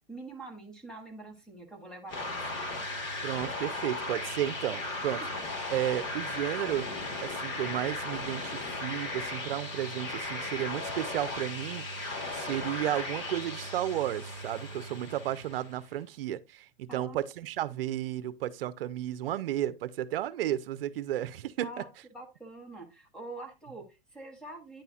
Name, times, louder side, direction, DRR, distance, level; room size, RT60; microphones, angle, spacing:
voice 1, 0.1-2.6 16.9-17.2 21.6-24.8, right 2 dB, 5° left, 0.7 m, -45 dB
sound 1, 2.1-15.8, left 2 dB, 30° left, 1.4 m, -36 dB
voice 2, 3.2-5.2 5.7-6.9 7.2-21.7, right 12 dB, 65° right, 0.6 m, -33 dB
9.0 x 5.6 x 2.4 m
supercardioid pair, 165°, 30 cm